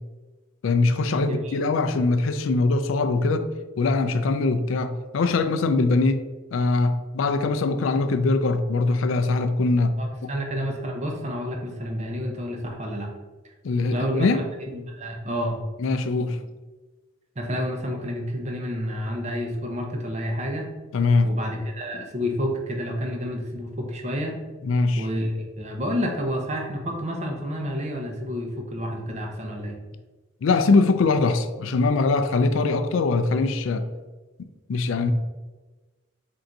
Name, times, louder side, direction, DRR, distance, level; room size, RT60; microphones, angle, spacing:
voice 1, 0.6-3.5 3.8-10.3 13.6-14.4 15.8-16.4 20.9-21.4 24.6-25.1 30.4-33.9 34.7-35.1, left 3 dB, 75° left, 0.4 m, -22 dB
voice 2, 1.2-1.5 10.0-13.1 13.9-15.5 17.4-20.7 21.2-24.4 25.0-29.8, equal, 35° right, 0.6 m, -29 dB
3.8 x 2.6 x 4.5 m
head